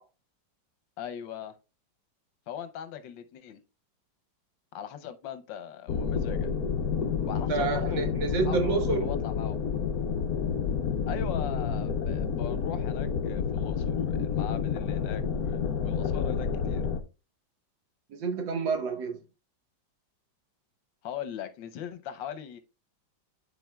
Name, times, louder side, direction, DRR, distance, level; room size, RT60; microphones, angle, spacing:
voice 1, 1.0-1.5 2.5-3.6 4.7-6.5 7.3-8.0 8.5-9.6 11.1-16.9 21.0-22.6, left 9 dB, 85° left, 1.5 m, -40 dB
sound 1, 5.9-17.0, left 6 dB, 60° left, 1.1 m, -29 dB
voice 2, 7.5-9.1 18.1-19.2, right 5 dB, 90° right, 1.9 m, -29 dB
11.5 x 4.3 x 2.2 m
omnidirectional pair, 2.0 m